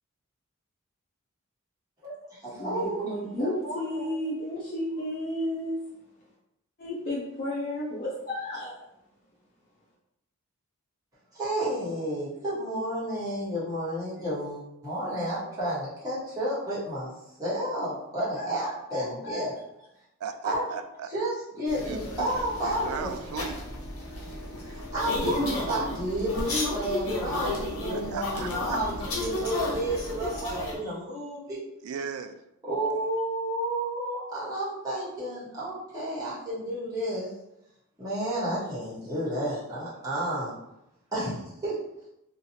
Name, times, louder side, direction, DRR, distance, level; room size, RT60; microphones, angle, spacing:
voice 1, 2.0-3.1 3.4-4.2 11.3-17.1 17.4-19.5 20.4-20.7 21.1-23.1 24.6-31.6 32.6-37.3 38.0-40.5 41.1-41.8, right 1 dB, 15° right, -11 dB, 1.2 m, -31 dB
voice 2, 2.6-5.8 6.8-8.8 18.2-19.4, left 1 dB, 40° left, -7 dB, 0.6 m, -33 dB
voice 3, 20.2-21.1 21.8-22.3 22.6-23.6 27.9-28.8 31.8-32.4, right 6 dB, 75° right, 10 dB, 0.3 m, -36 dB
sound 1, 21.7-30.7, left 2 dB, 75° left, 0.8 m, -32 dB
2.9 x 2.4 x 2.7 m, 0.84 s
head